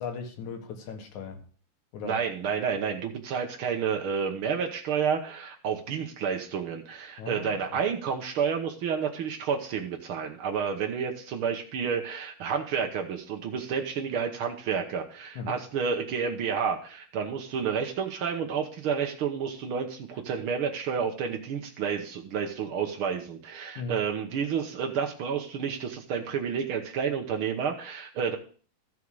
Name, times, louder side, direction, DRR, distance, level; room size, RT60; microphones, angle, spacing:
voice 1, 0.0-1.4 1.9-2.2 7.2-7.8 15.4-15.6 23.8-24.0, left 5 dB, 65° left, 5 dB, 2.6 m, -37 dB
voice 2, 2.0-28.4, right 6 dB, 90° right, 2 dB, 1.1 m, -30 dB
14.0 x 5.7 x 4.8 m, 0.41 s
omnidirectional pair, 4.1 m